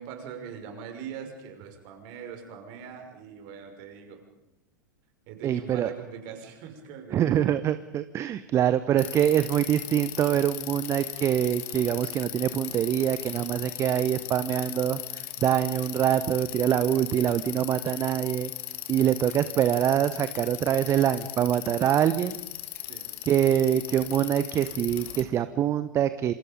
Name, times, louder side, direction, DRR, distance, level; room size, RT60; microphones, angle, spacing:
voice 1, 0.0-4.2 5.3-7.5 22.9-23.1, right 7 dB, 45° right, 4 dB, 5.8 m, -41 dB
voice 2, 5.4-5.9 7.1-18.5 18.9-22.4 23.3-26.3, right 10 dB, 25° right, 14 dB, 0.9 m, -25 dB
Bicycle, 9.0-25.2, left 15 dB, 50° left, 2.8 m, -38 dB
27.5 x 27.0 x 5.3 m, 0.96 s
figure-of-eight pair, 90°, 10 cm